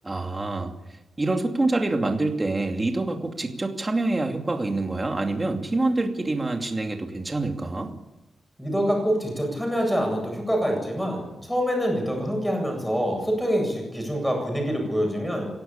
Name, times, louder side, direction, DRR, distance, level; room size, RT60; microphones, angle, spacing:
voice 1, 0.0-0.7 1.2-7.9, right 2 dB, 20° right, 3 dB, 2.6 m, -26 dB
voice 2, 8.6-15.5, equal, 5° left, 2 dB, 8.0 m, -25 dB
24.0 x 17.0 x 8.9 m, 1.0 s
wide cardioid pair, 150°, 0 cm